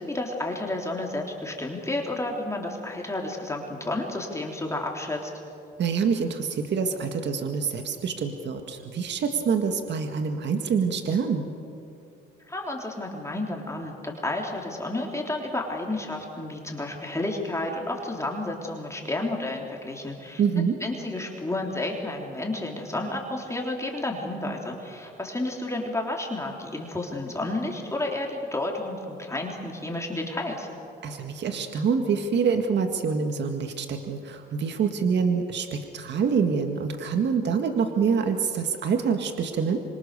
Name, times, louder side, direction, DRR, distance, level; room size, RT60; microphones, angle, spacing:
voice 1, 0.0-5.3 12.5-20.4 20.8-30.7, left 2 dB, 15° left, 0 dB, 3.5 m, -31 dB
voice 2, 5.8-11.5 20.4-20.8 31.0-39.8, right 6 dB, 60° right, 5 dB, 1.8 m, -26 dB
26.0 x 25.0 x 6.8 m, 2.7 s
cardioid pair, 90°, 20 cm